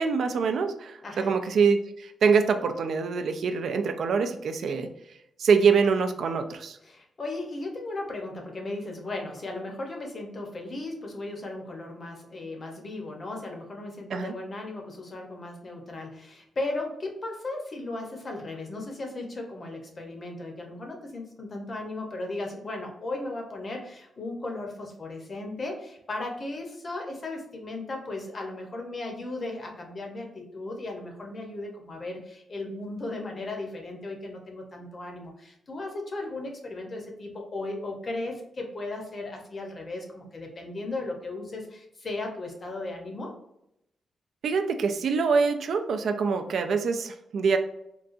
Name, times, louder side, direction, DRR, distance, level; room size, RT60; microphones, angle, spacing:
voice 1, 0.0-4.9 5.4-6.8 14.1-14.3 44.4-47.6, right 5 dB, 60° right, 7 dB, 0.3 m, -24 dB
voice 2, 1.0-1.3 6.8-43.3, left 2 dB, 35° left, 2 dB, 0.7 m, -36 dB
3.8 x 2.3 x 2.5 m, 0.80 s
wide cardioid pair, 170°, 0 cm